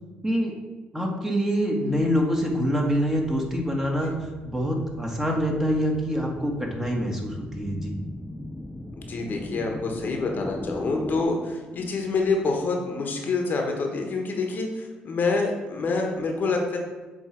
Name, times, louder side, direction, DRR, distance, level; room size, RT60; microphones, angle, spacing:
voice 1, 0.9-4.1 4.4-7.9, equal, 10° right, 0 dB, 1.5 m, -25 dB
sound 1, 3.1-11.2, left 1 dB, 10° left, 0.5 m, -39 dB
voice 2, 9.0-16.8, left 3 dB, 50° left, 2 dB, 1.1 m, -27 dB
7.7 x 3.2 x 4.4 m, 1.2 s
supercardioid pair, 65°, 4 cm